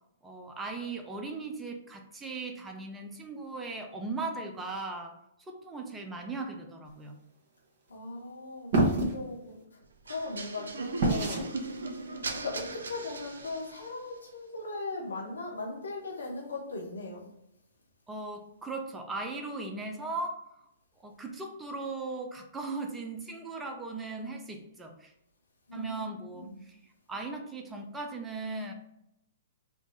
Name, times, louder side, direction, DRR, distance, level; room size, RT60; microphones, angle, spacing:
voice 1, 0.2-5.2 5.5-7.2 18.1-20.5 21.0-25.1 25.7-26.8 27.1-28.7, right 3 dB, 10° right, 3 dB, 0.5 m, -38 dB
voice 2, 7.9-9.6 10.0-11.5 12.2-17.2 25.7-26.0 26.3-26.6, left 2 dB, 90° left, -4 dB, 1.0 m, -38 dB
sound 1, 8.7-9.1 11.0-11.5, right 2 dB, 55° right, 1.0 m, -25 dB
sound 2, 10.1-14.0, right 3 dB, 80° right, 0.5 m, -38 dB
3.6 x 2.0 x 3.9 m, 0.83 s
hypercardioid pair, 125°, 0 cm